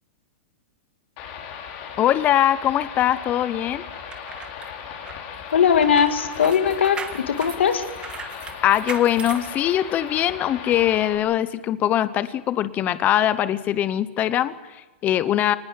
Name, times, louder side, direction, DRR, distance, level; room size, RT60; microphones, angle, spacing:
sound 1, 1.2-11.2, left 7 dB, 45° left, 5.0 m, -37 dB
voice 1, 2.0-3.8 8.6-15.6, left 11 dB, 25° left, 14 dB, 0.8 m, -22 dB
sound 2, 3.9-10.2 10.7-10.8, right 6 dB, 15° right, 1.8 m, -38 dB
voice 2, 5.5-7.8, left 7 dB, 90° left, 8 dB, 2.3 m, -20 dB
24.5 x 19.5 x 9.1 m, 1.2 s
hypercardioid pair, 140°, 6 cm